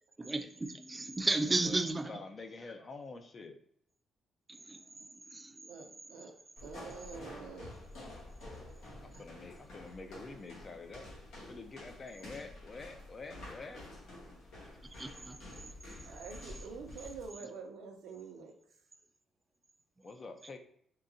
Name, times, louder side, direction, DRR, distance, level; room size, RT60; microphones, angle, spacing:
voice 1, 0.2-2.2 4.5-4.8 5.1-5.7 15.0-16.2, right 2 dB, 20° right, 0.4 m, -35 dB
voice 2, 1.6-3.6 9.0-11.1 11.5-13.8 20.0-20.6, left 3 dB, 40° left, 0.5 m, -47 dB
voice 3, 5.6-7.8 9.1-9.2 16.0-18.5, right 5 dB, 85° right, 0.6 m, -47 dB
sound 1, 6.6-17.3, left 1 dB, 80° left, 1.2 m, -50 dB
3.8 x 2.8 x 2.6 m
cardioid pair, 90°, 0 cm